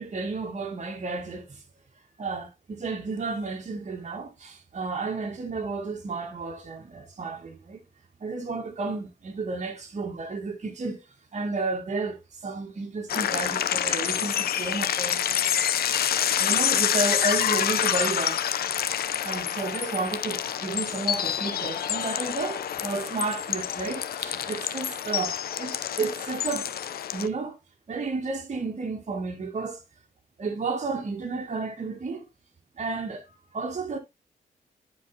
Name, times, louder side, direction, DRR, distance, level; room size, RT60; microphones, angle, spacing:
voice 1, 0.0-1.6 2.2-7.8 8.2-11.0 11.3-15.8 16.4-18.4 19.2-26.7 27.1-27.6 27.9-29.8 30.4-32.3 32.8-33.2 33.5-34.0, right 3 dB, 50° right, 2.1 m, -32 dB
sound 1, 13.1-27.3, left 10 dB, 75° left, 0.6 m, -27 dB
10.0 x 4.8 x 2.8 m
cardioid pair, 85°, 16 cm